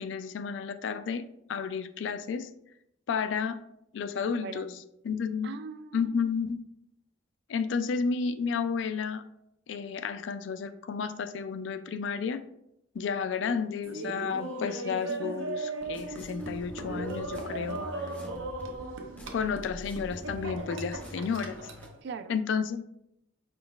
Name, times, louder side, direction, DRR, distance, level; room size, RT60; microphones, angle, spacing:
voice 1, 0.0-2.5 3.1-3.6 3.9-4.7 5.0-5.5 5.9-6.6 7.5-9.2 9.7-12.4 12.9-17.8 19.3-21.6 22.3-22.9, left 6 dB, 65° left, 11 dB, 0.3 m, -32 dB
voice 2, 4.4-4.8 5.4-6.3 14.8-15.4 17.5-18.5 22.0-22.3, right 5 dB, 60° right, 10 dB, 0.3 m, -42 dB
Laughter, 13.8-21.9, right 2 dB, 80° right, 0.7 m, -37 dB
sound 1, 15.8-21.9, left 1 dB, 10° left, 0.5 m, -45 dB
5.1 x 3.8 x 2.3 m, 0.80 s
head